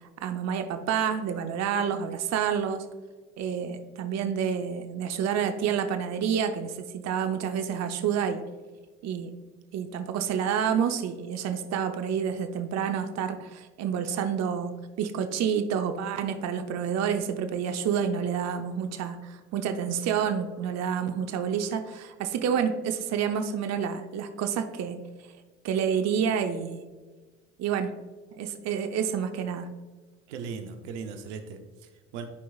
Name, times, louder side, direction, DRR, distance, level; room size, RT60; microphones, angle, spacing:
voice 1, 0.2-2.8 3.4-8.4 9.0-9.3 9.7-25.0 25.6-26.8 27.6-27.9 28.4-29.7, right 7 dB, 50° right, 7 dB, 0.7 m, -29 dB
voice 2, 30.3-32.3, right 5 dB, 80° right, 6 dB, 0.8 m, -38 dB
11.5 x 4.6 x 2.4 m, 1.3 s
hypercardioid pair, 70°, 35 cm